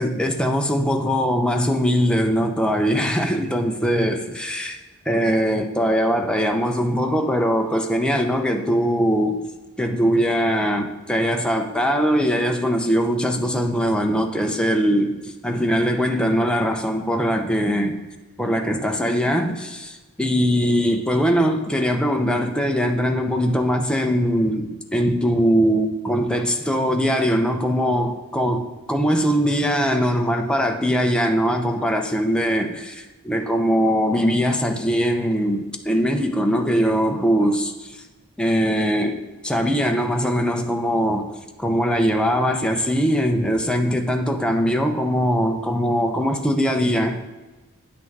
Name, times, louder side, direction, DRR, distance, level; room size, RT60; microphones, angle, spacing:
voice 1, 0.0-4.7 5.1-9.4 9.8-18.0 18.4-28.6 28.9-38.0 38.4-39.2 39.4-41.3 41.6-47.3, equal, 5° left, 3 dB, 0.7 m, -21 dB
9.4 x 6.0 x 4.7 m, 1.2 s
head